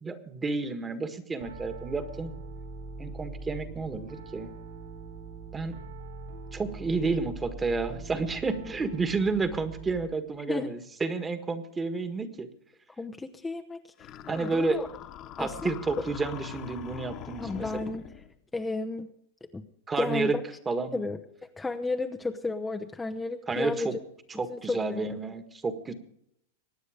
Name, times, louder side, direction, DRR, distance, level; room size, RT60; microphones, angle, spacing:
voice 1, 0.0-2.3 3.0-4.5 5.5-5.8 6.5-12.5 14.3-14.9 15.4-17.7 19.9-20.4 20.6-21.0 23.5-23.9 24.4-25.9, right 3 dB, 15° right, 9 dB, 1.7 m, -30 dB
Piano, 1.4-10.0, right 3 dB, 70° right, 7.7 m, -42 dB
voice 2, 13.0-14.9 15.4-15.7 17.4-18.1 18.5-19.1 19.5-19.6 20.0-20.4 20.9-21.2 21.6-24.0 24.5-25.1, left 3 dB, 10° left, 4 dB, 0.8 m, -33 dB
sound 1, 14.0-18.3, left 10 dB, 40° left, 1.5 m, -43 dB
23.0 x 9.4 x 5.1 m, 0.74 s
hypercardioid pair, 115°, 0 cm